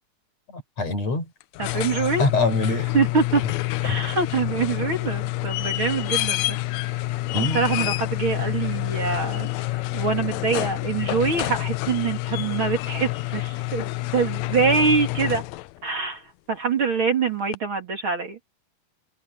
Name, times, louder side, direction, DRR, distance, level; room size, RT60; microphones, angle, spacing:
voice 1, 0.5-1.3 1.9-2.9 3.9-4.0 7.3-7.6, left 2 dB, 55° left, 6.2 m, -25 dB
sound 1, 1.4-15.8 17.5-17.6, left 18 dB, 75° left, 1.7 m, -27 dB
voice 2, 1.6-2.2 2.9-3.4 3.8-6.9 7.4-9.5 9.9-13.8 14.1-15.4 15.8-16.2 16.5-18.4, right 5 dB, 45° right, 3.0 m, -24 dB
omnidirectional pair, 3.6 m